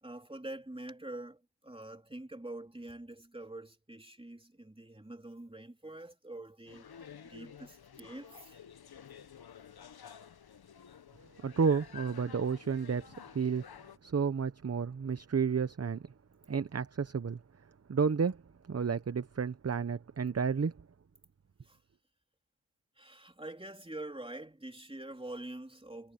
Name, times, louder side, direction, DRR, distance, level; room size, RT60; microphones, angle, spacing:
voice 1, 0.0-8.6 21.6-21.8 23.0-26.1, right 1 dB, 15° right, 3.4 m, -45 dB
sound 1, 6.7-14.0, left 8 dB, 65° left, 1.0 m, -52 dB
voice 2, 11.4-13.6 14.0-16.0 16.5-17.4 17.9-18.4 18.7-20.7, right 6 dB, 40° right, 0.8 m, -31 dB
wide cardioid pair, 75°, 40 cm